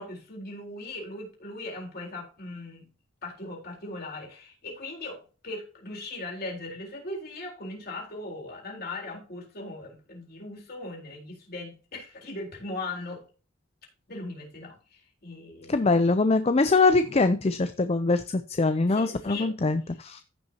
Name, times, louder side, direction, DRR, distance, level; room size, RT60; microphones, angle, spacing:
voice 1, 0.0-2.9 3.2-13.2 14.1-15.9 18.9-19.5, left 2 dB, 50° left, -1 dB, 4.0 m, -39 dB
voice 2, 15.7-20.2, left 3 dB, 30° left, 10 dB, 0.5 m, -23 dB
15.0 x 5.9 x 2.9 m, 0.35 s
head